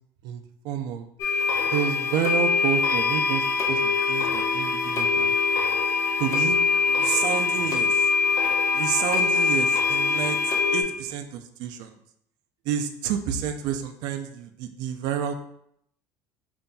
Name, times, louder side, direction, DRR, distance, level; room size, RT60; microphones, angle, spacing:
voice 1, 0.2-1.1 1.7-5.3 6.2-6.6 6.9-8.1 8.7-11.9 12.7-15.4, right 8 dB, 60° right, 7 dB, 0.4 m, -29 dB
sound 1, 1.2-10.8, left 5 dB, 40° left, 0.6 m, -23 dB
5.3 x 2.6 x 2.2 m, 0.73 s
cardioid pair, 145°, 8 cm